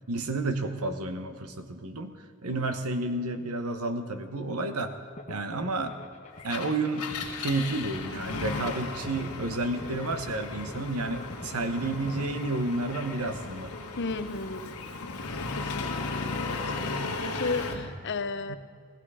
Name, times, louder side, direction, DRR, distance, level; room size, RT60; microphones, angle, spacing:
voice 1, 0.1-2.1 2.4-4.9 5.3-6.0 6.4-13.7 17.0-17.2 17.6-17.9 18.5-18.6, right 2 dB, 85° right, 8 dB, 1.1 m, -31 dB
sound 1, 5.2-14.1, left 1 dB, 30° left, 1.2 m, -45 dB
Engine, 6.4-17.9, left 3 dB, 90° left, 1.6 m, -36 dB
voice 2, 14.0-14.7 15.5-18.5, left 3 dB, 50° left, 11 dB, 0.7 m, -34 dB
16.0 x 16.0 x 5.0 m, 2.1 s
head